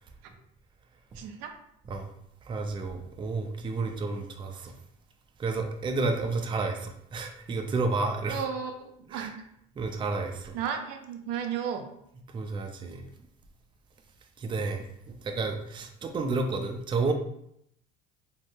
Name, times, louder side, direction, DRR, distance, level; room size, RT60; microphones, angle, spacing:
voice 1, 1.1-1.5 8.3-9.4 10.5-11.8, right 7 dB, 80° right, 5 dB, 0.5 m, -34 dB
voice 2, 2.4-4.7 5.4-8.4 9.1-9.3 9.8-10.5 12.3-13.0 14.4-17.1, right 3 dB, 25° right, 4 dB, 0.4 m, -31 dB
3.4 x 2.1 x 2.7 m, 0.73 s
supercardioid pair, 90°, 20 cm